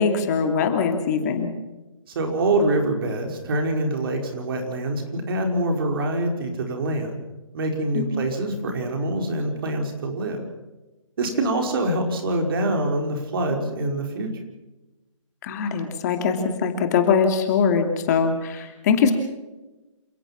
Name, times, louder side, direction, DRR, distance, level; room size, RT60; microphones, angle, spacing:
voice 1, 0.0-1.5 7.9-8.1 15.4-19.1, left 6 dB, 30° left, 6 dB, 2.7 m, -22 dB
voice 2, 2.1-7.1 7.5-10.4 11.2-14.3, right 1 dB, 45° right, 4 dB, 5.2 m, -25 dB
28.5 x 17.0 x 5.9 m, 1.1 s
figure-of-eight pair, 145°, 17 cm